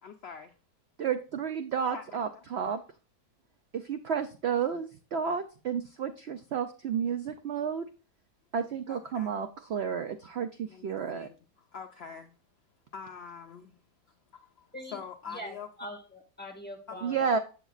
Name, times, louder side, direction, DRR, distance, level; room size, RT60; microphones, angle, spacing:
voice 1, 0.0-0.5 1.9-2.0 2.3-2.4 8.9-9.3 10.7-12.3 12.9-13.8 14.3-15.7 16.9-17.1, left 6 dB, 85° left, 0.5 m, -45 dB
voice 2, 1.0-2.8 3.9-7.8 8.5-11.3 17.0-17.4, right 7 dB, 80° right, 0.5 m, -31 dB
voice 3, 14.7-17.3, equal, 5° left, 1.4 m, -43 dB
8.0 x 7.0 x 2.4 m
omnidirectional pair, 1.8 m